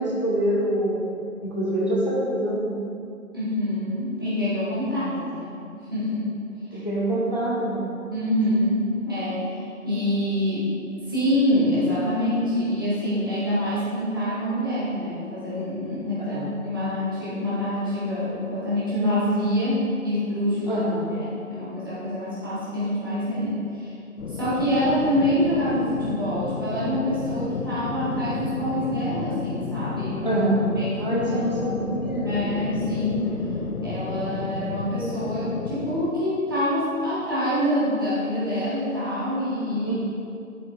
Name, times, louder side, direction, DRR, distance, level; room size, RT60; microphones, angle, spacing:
voice 1, 0.0-2.8 5.0-5.3 6.7-7.9 16.3-16.5 20.7-21.1 30.2-32.4 39.8-40.0, right 1 dB, 30° left, -5 dB, 0.7 m, -26 dB
voice 2, 3.3-5.6 5.9-6.2 6.7-6.8 8.1-10.6 10.9-20.8 21.2-23.9 24.3-30.4 30.8-31.4 32.2-33.3 33.8-40.0, left 1 dB, 15° right, -13 dB, 1.4 m, -26 dB
sound 1, 24.2-36.1, left 4 dB, 80° left, 0.7 m, -32 dB
10.5 x 7.8 x 2.3 m, 2.6 s
figure-of-eight pair, 170°, 43 cm